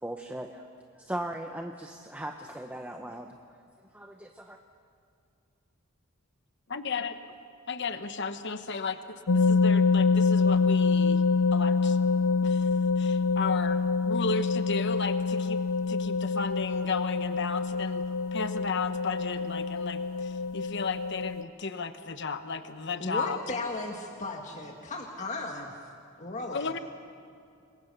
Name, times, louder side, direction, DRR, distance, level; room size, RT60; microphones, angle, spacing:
voice 1, 0.0-0.6 1.0-3.3 3.9-4.6, right 1 dB, 5° right, 3 dB, 0.9 m, -38 dB
voice 2, 6.7-7.2 7.7-11.2 11.5-12.0 12.4-12.7 13.0-13.8 14.0-15.6 15.9-18.0 18.3-23.4 26.5-26.8, left 4 dB, 55° left, 9 dB, 1.1 m, -34 dB
sound 1, 9.3-21.4, left 4 dB, 70° left, 0.6 m, -26 dB
voice 3, 23.0-25.7 26.2-26.7, left 2 dB, 35° left, 1 dB, 1.7 m, -35 dB
27.5 x 22.0 x 6.8 m, 2.4 s
head